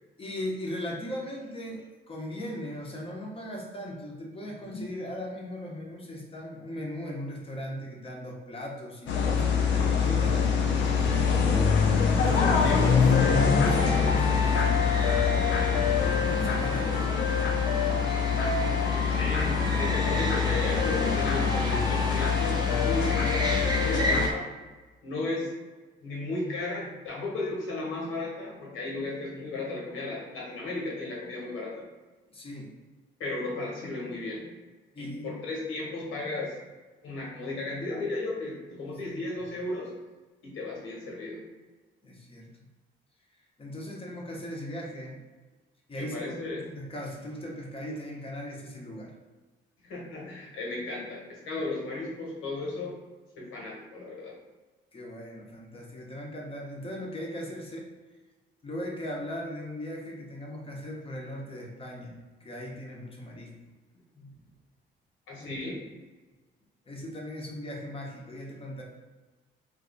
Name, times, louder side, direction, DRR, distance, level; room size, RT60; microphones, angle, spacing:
voice 1, 0.2-11.6 12.2-14.7 16.1-17.3 32.3-32.7 34.9-35.4 38.9-39.2 42.0-42.5 43.6-45.2 45.9-49.1 54.9-57.9 58.6-63.5 64.1-64.4 65.4-65.5 66.9-68.8, equal, 30° left, -2 dB, 0.9 m, -38 dB
sound 1, 9.1-24.3, left 6 dB, 70° left, 0.6 m, -24 dB
voice 2, 12.2-12.8 15.4-15.8 16.7-16.8 19.1-24.5 25.0-25.5 26.0-31.8 33.2-34.5 35.0-36.5 37.0-39.9 40.4-41.5 45.9-46.6 49.8-52.9 53.3-54.3 65.3-65.8, left 2 dB, 85° left, -4 dB, 1.2 m, -35 dB
sound 2, 12.3-24.3, right 1 dB, 20° right, 0.5 m, -35 dB
2.7 x 2.3 x 3.9 m, 1.2 s
cardioid pair, 90°, 20 cm